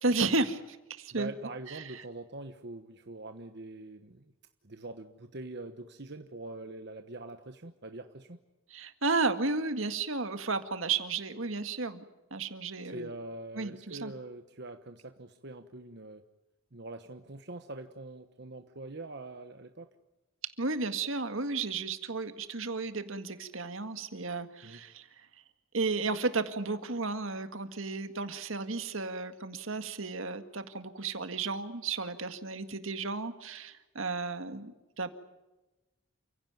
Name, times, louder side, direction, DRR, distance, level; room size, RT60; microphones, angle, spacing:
voice 1, 0.0-1.3 1.7-2.0 8.7-12.0 12.3-13.1 13.6-14.1 20.6-25.1 25.7-34.7 35.0-35.1, right 3 dB, 70° right, 9 dB, 1.9 m, -33 dB
voice 2, 1.1-4.3 4.6-8.4 12.8-16.2 16.7-19.9 24.6-24.8, right 2 dB, 55° right, 7 dB, 1.2 m, -44 dB
29.0 x 16.5 x 9.3 m, 1.0 s
head